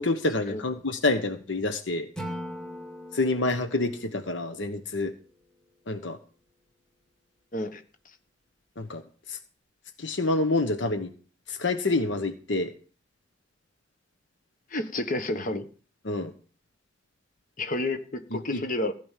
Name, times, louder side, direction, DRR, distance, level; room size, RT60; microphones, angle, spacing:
voice 1, 0.0-2.1 3.1-5.1 5.9-6.2 8.8-9.0 9.3-9.4 10.0-11.1 11.5-12.7 16.0-16.3 18.5-18.6, left 2 dB, 75° left, 8 dB, 1.1 m, -27 dB
Acoustic guitar / Strum, 2.2-5.3, equal, 5° left, 2.1 m, -41 dB
voice 2, 14.7-15.7 17.6-18.9, left 2 dB, 45° left, 7 dB, 1.4 m, -30 dB
16.0 x 5.3 x 9.2 m, 0.40 s
head